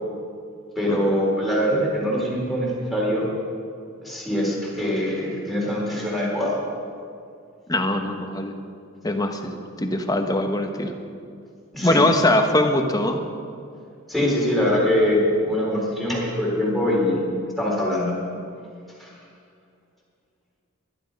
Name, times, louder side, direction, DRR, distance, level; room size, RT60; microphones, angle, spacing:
voice 1, 0.8-3.3 4.0-6.5 11.7-12.0 14.1-17.2 17.6-18.2 19.0-19.1, left 1 dB, ahead, -5 dB, 4.1 m, -23 dB
voice 2, 7.7-8.5 9.0-10.9 11.8-13.2, left 1 dB, 20° left, 5 dB, 1.2 m, -22 dB
20.5 x 12.0 x 5.3 m, 2.4 s
head